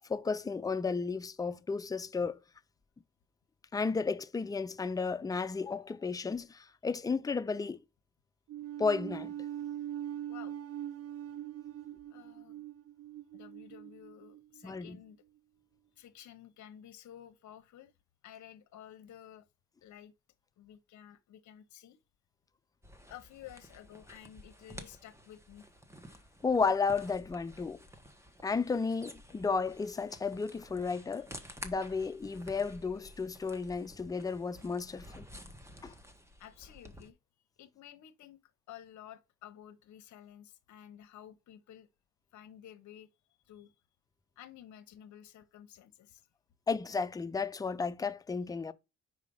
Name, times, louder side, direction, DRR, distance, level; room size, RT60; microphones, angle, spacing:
voice 1, 0.1-2.4 3.7-7.8 8.8-9.3 14.6-15.0 26.4-27.8 28.4-31.3 31.6-35.3 35.8-35.9 46.7-48.7, left 4 dB, 10° left, 0.4 m, -33 dB
sound 1, 8.5-14.9, right 11 dB, 50° right, 0.4 m, -42 dB
voice 2, 12.1-12.6 13.3-15.2 16.0-17.9 18.2-19.5 19.8-20.1 20.6-22.0 23.1-25.7 36.4-37.2 37.6-38.4 38.7-41.9 42.3-43.1 43.5-43.7 44.4-46.3, left 11 dB, 70° left, 0.9 m, -52 dB
sound 2, 22.8-37.1, equal, 10° right, 1.2 m, -52 dB
4.9 x 4.7 x 5.4 m
cardioid pair, 90°, 30 cm